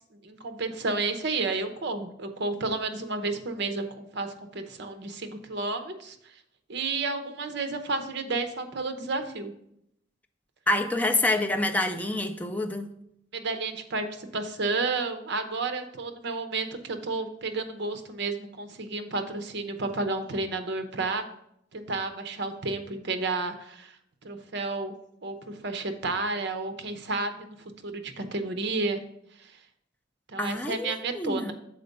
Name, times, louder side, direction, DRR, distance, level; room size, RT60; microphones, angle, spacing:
voice 1, 0.2-6.2 6.7-9.5 13.3-21.2 21.7-23.9 24.2-25.0 25.2-27.6 27.8-29.0 29.4-29.5 30.3-31.5, right 3 dB, 60° right, 7 dB, 0.8 m, -31 dB
voice 2, 10.7-12.9 30.4-31.5, left 2 dB, 10° left, 4 dB, 0.4 m, -27 dB
6.6 x 4.5 x 5.3 m, 0.75 s
head